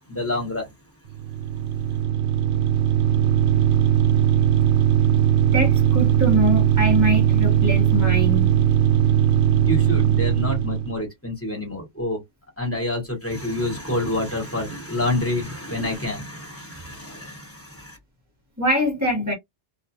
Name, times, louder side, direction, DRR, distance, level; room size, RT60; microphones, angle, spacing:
voice 1, 0.1-0.7 9.6-12.2 12.6-18.0, left 1 dB, 15° left, 1.1 m, -28 dB
sound 1, 1.1-11.0, right 10 dB, 80° right, 0.8 m, -19 dB
voice 2, 5.5-8.5 18.6-19.3, right 1 dB, 15° right, 0.9 m, -23 dB
2.4 x 2.2 x 2.7 m
omnidirectional pair, 1.2 m